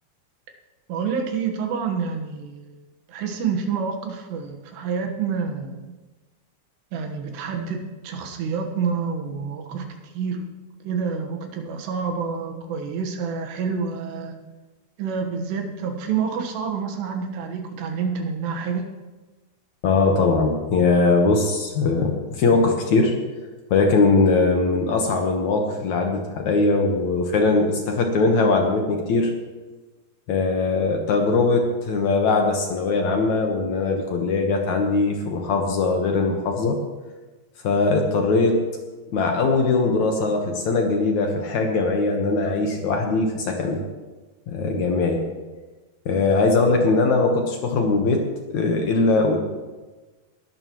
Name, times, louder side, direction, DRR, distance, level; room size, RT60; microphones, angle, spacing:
voice 1, 0.9-2.8 3.1-6.0 6.9-10.5 10.8-14.5 15.0-18.9, right 6 dB, 80° right, 3 dB, 3.6 m, -28 dB
voice 2, 19.8-23.2 23.7-29.3 30.3-36.8 37.6-38.6 39.1-43.8 44.5-45.2 46.1-48.3 48.5-49.4, left 3 dB, 65° left, 2 dB, 1.9 m, -21 dB
20.5 x 13.0 x 3.1 m, 1.2 s
omnidirectional pair, 4.8 m